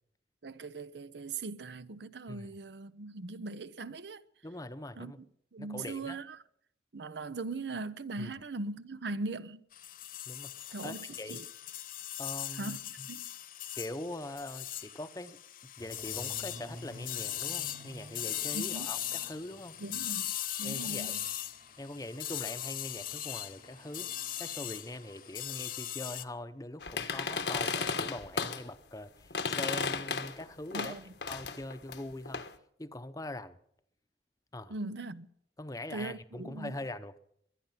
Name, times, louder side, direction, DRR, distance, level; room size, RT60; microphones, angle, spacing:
voice 1, 0.4-4.2 5.0-5.1 5.5-6.4 6.9-9.6 10.7-11.4 12.6-13.3 18.5-18.9 19.8-21.2 30.7-31.0 34.7-35.3 35.9-36.7, right 3 dB, 75° right, 0.7 m, -40 dB
voice 2, 4.4-5.2 5.6-6.2 8.2-8.3 10.3-11.4 12.2-13.1 13.8-19.8 20.6-21.2 21.8-30.9 31.3-32.5 32.8-33.6 34.5-34.8 35.6-37.2, left 1 dB, 20° left, 0.8 m, -42 dB
sound 1, 9.7-26.2, left 12 dB, 50° left, 0.7 m, -39 dB
sound 2, 15.8-20.3 20.7-26.0 26.2-26.5 26.9-27.0 27.3-27.4, equal, 45° right, 2.4 m, -53 dB
sound 3, 26.8-28.6 29.3-30.4 30.7-32.5, left 5 dB, 80° left, 1.3 m, -34 dB
22.5 x 10.0 x 5.8 m
head